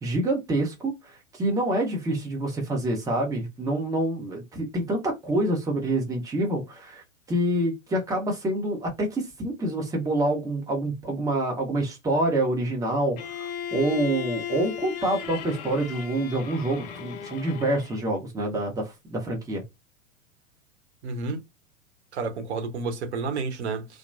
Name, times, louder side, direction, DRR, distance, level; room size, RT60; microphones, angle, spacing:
voice 1, 0.0-7.0 7.3-19.6, right 1 dB, 10° right, 0.8 m, -27 dB
Bowed string instrument, 13.2-18.1, left 9 dB, 35° left, 0.4 m, -36 dB
voice 2, 21.0-21.4 22.1-23.9, right 4 dB, 60° right, 0.9 m, -30 dB
2.9 x 2.1 x 2.4 m
figure-of-eight pair, 100°, 38 cm